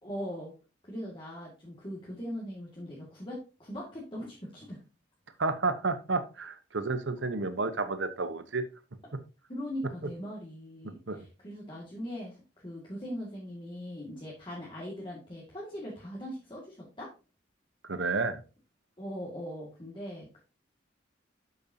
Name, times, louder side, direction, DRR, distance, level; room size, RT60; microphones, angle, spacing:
voice 1, 0.0-0.5 0.8-4.8 9.5-12.4 12.6-17.1 19.0-20.4, equal, 25° left, -4 dB, 2.1 m, -40 dB
voice 2, 5.4-8.6 11.1-11.2 17.8-18.4, right 3 dB, 80° right, 9 dB, 1.0 m, -31 dB
12.0 x 5.4 x 2.8 m, 0.31 s
head